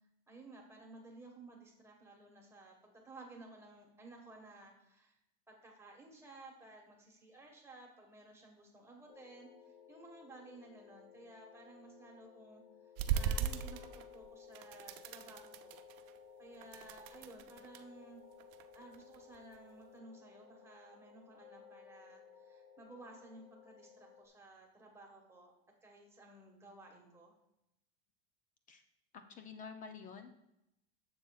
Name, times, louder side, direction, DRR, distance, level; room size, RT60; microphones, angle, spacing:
voice 1, 0.3-5.1 5.5-9.5 9.9-12.6 13.1-18.2 18.7-25.5 25.8-27.3, right 2 dB, 10° right, 0 dB, 1.4 m, -56 dB
sound 1, 9.1-24.3, left 7 dB, 50° left, 1.3 m, -57 dB
sound 2, 13.0-14.3 14.5-16.2 16.5-17.8 18.4-19.6, right 8 dB, 55° right, 0.6 m, -38 dB
voice 2, 29.1-30.5, left 5 dB, 30° left, 8 dB, 0.5 m, -50 dB
11.5 x 7.1 x 2.4 m, 0.86 s
supercardioid pair, 145°, 29 cm